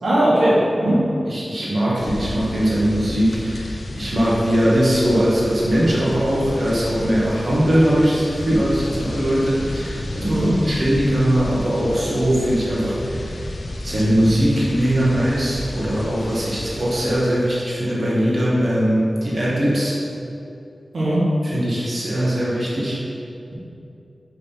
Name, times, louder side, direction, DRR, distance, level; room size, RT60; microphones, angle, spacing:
voice 1, 0.0-1.0 10.3-10.5 20.9-21.2, right 1 dB, 90° right, -8 dB, 1.5 m, -18 dB
voice 2, 1.3-13.4 13.8-19.9 21.4-23.0, equal, 55° right, -6 dB, 1.5 m, -20 dB
sound 1, 2.0-17.2, left 1 dB, 60° left, 0.6 m, -31 dB
6.4 x 3.5 x 5.7 m, 2.7 s
cardioid pair, 50°, 0 cm